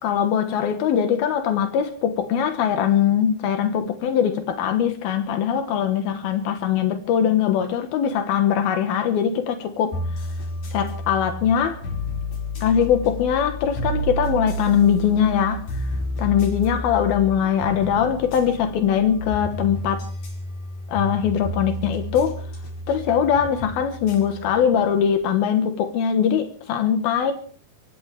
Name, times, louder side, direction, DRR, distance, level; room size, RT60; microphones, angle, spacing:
voice 1, 0.0-10.0 10.7-11.8 12.6-15.9 16.2-20.1 20.9-22.4 22.9-27.3, left 8 dB, 85° left, 3.3 m, -21 dB
sound 1, 9.9-25.2, equal, 65° left, 7.0 m, -31 dB
24.5 x 16.5 x 3.5 m
omnidirectional pair, 4.3 m